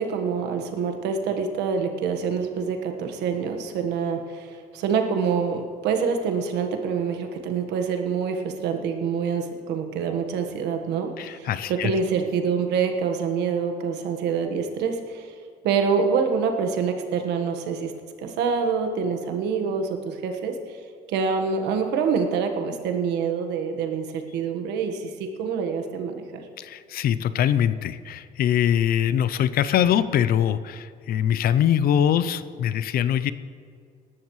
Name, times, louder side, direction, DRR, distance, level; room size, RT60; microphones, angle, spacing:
voice 1, 0.0-15.3 15.6-17.9 18.2-20.5 21.1-26.4, right 6 dB, 85° right, 5 dB, 1.5 m, -26 dB
voice 2, 11.2-11.9 26.6-33.3, left 10 dB, 60° left, 14 dB, 0.6 m, -23 dB
18.0 x 12.0 x 3.2 m, 2.2 s
cardioid pair, 110°, 17 cm